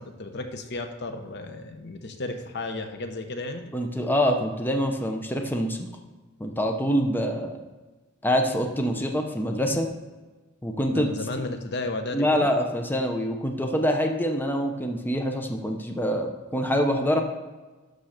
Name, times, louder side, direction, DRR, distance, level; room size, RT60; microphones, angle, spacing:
voice 1, 0.0-3.6 10.9-12.5, left 2 dB, 55° left, 6 dB, 0.9 m, -33 dB
voice 2, 3.7-5.9 6.4-7.6 8.2-9.9 10.6-11.1 12.1-17.2, equal, 10° left, 3 dB, 0.8 m, -25 dB
11.5 x 3.9 x 6.5 m, 1.2 s
head